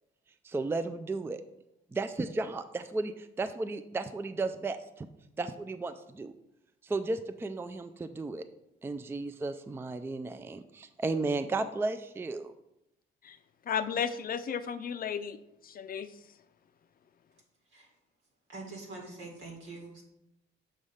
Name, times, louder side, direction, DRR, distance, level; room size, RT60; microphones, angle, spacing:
voice 1, 0.4-1.4 1.9-5.1 5.4-6.3 6.8-8.4 8.8-12.5, right 3 dB, 10° right, 10 dB, 0.3 m, -34 dB
voice 2, 13.7-15.4 15.6-16.1, left 7 dB, 45° left, 11 dB, 0.5 m, -33 dB
voice 3, 18.5-20.0, right 3 dB, 85° right, 0 dB, 2.1 m, -44 dB
6.3 x 3.3 x 5.5 m, 0.84 s
cardioid pair, 90°, 20 cm